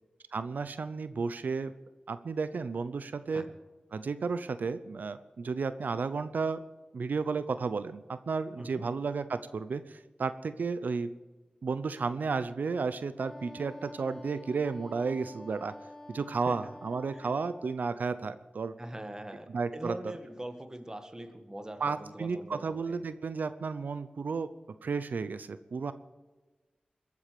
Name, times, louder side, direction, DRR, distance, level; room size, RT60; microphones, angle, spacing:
voice 1, 0.3-1.7 2.1-3.5 3.9-6.6 6.9-11.1 11.6-15.7 16.1-18.7 19.5-19.9 21.8-24.5 24.8-25.9, right 4 dB, 85° right, 13 dB, 0.7 m, -33 dB
Wind instrument woodwind instrument, 13.2-17.8, left 1 dB, 15° left, 1.2 m, -49 dB
voice 2, 18.8-23.0, right 1 dB, 20° right, 7 dB, 1.8 m, -42 dB
21.5 x 8.4 x 6.8 m, 1.2 s
wide cardioid pair, 65°, 3 cm